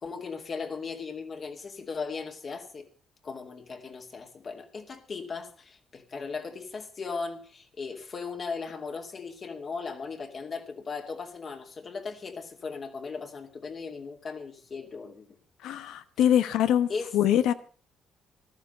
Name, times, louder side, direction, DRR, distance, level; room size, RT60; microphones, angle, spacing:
voice 1, 0.0-2.9 3.2-15.3 16.9-17.1, left 4 dB, 45° left, 2.5 m, -37 dB
voice 2, 15.6-16.9 17.1-17.5, left 10 dB, 85° left, 1.0 m, -23 dB
14.5 x 12.0 x 5.5 m
supercardioid pair, 75°, 0 cm